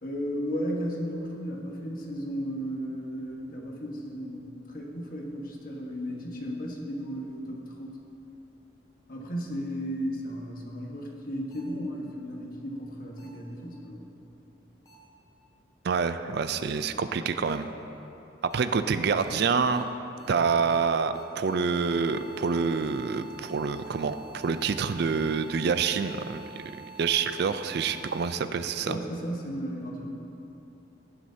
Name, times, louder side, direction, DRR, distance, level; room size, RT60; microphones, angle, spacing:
voice 1, 0.0-8.0 9.1-14.1 28.8-30.1, equal, 50° left, -1 dB, 1.4 m, -35 dB
sound 1, 11.5-11.6 13.2-13.3 14.9-15.0 16.4-16.5 17.5-17.6 18.5-18.6 19.2-19.3 19.7-19.8 20.2-20.3 20.7-20.8 21.1-28.3, right 6 dB, 20° left, 1.3 m, -48 dB
voice 2, 15.8-17.7 18.4-19.9 20.3-29.0, right 5 dB, 60° right, 10 dB, 0.4 m, -27 dB
18.0 x 7.5 x 2.8 m, 2.9 s
head